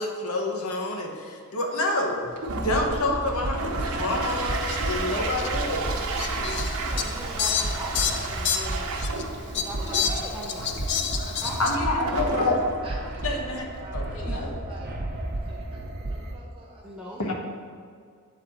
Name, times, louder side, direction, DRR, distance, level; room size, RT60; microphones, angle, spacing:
voice 1, 0.0-2.2 2.6-5.9 11.6-13.6 13.9-14.6 17.2-17.3, left 2 dB, 75° left, 1 dB, 0.9 m, -28 dB
Toilet flush, 2.2-15.4, right 3 dB, 80° right, 0.8 m, -34 dB
sound 1, 2.5-16.3, right 1 dB, 45° right, 0.7 m, -33 dB
Fowl, 4.7-4.8 5.3-5.5 6.2-9.2 9.5-11.8, left 7 dB, 50° left, 0.4 m, -29 dB
voice 2, 5.1-9.1 9.5-10.7 11.4-11.8 14.2-14.5 16.8-17.2, right 1 dB, 5° right, -4 dB, 0.6 m, -41 dB
voice 3, 6.4-7.1 9.8-10.3 11.0-11.4 12.0-12.3 12.8-15.0 15.5-17.3, right 1 dB, 25° right, -3 dB, 1.2 m, -45 dB
8.0 x 4.0 x 4.2 m, 2.1 s
head